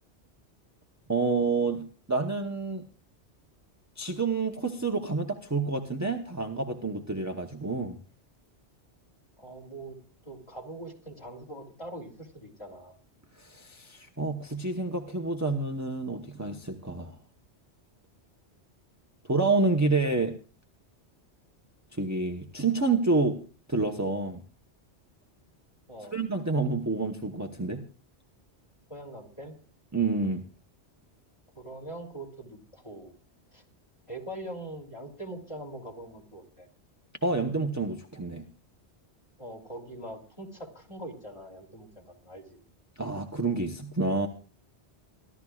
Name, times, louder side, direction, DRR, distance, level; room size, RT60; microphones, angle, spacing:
voice 1, 1.1-2.9 4.0-8.0 13.4-17.1 19.3-20.4 22.0-23.4 23.7-24.4 26.1-27.8 29.9-30.4 37.2-38.4 43.0-44.3, right 3 dB, 15° right, 4 dB, 1.0 m, -28 dB
voice 2, 9.4-10.0 10.2-13.0 25.9-26.2 28.9-29.5 31.5-33.1 33.5-33.6 34.1-36.7 39.4-42.6, right 1 dB, 25° left, 2 dB, 3.2 m, -42 dB
28.5 x 12.5 x 2.4 m, 0.38 s
omnidirectional pair, 1.2 m